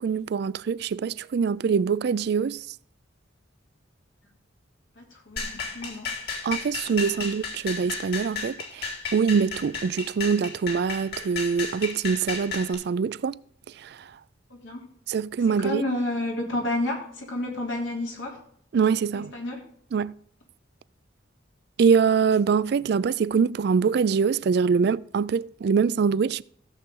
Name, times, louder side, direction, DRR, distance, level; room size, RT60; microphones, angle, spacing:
voice 1, 0.0-2.6 6.4-13.4 13.8-14.1 15.1-15.8 18.7-19.3 19.9-20.1 21.8-26.4, right 6 dB, 55° right, 0.3 m, -24 dB
voice 2, 5.0-6.1 7.1-7.2 14.5-14.9 15.5-18.4 19.1-19.6, left 1 dB, 80° left, 3.1 m, -31 dB
sound 1, 5.4-12.7, left 5 dB, 55° left, 3.1 m, -33 dB
14.5 x 7.3 x 3.8 m
head